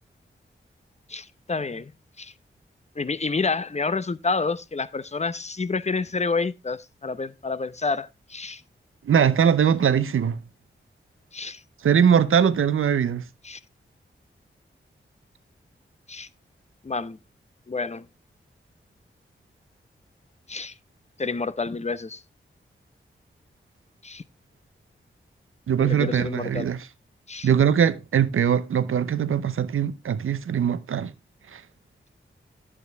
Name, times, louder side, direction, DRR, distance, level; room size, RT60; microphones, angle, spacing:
voice 1, 1.1-1.9 2.2-2.3 3.0-8.6 11.3-11.6 13.4-13.6 16.1-16.3 16.8-17.2 17.7-18.1 20.5-20.7 21.2-22.2 24.0-24.2 25.8-26.7 27.3-27.5, left 4 dB, 30° left, 0.8 m, -29 dB
voice 2, 9.0-10.4 11.8-13.2 25.7-26.9 27.4-31.1 31.5-31.6, right 8 dB, 85° right, 0.8 m, -21 dB
10.5 x 8.6 x 3.4 m
cardioid pair, 45°, 21 cm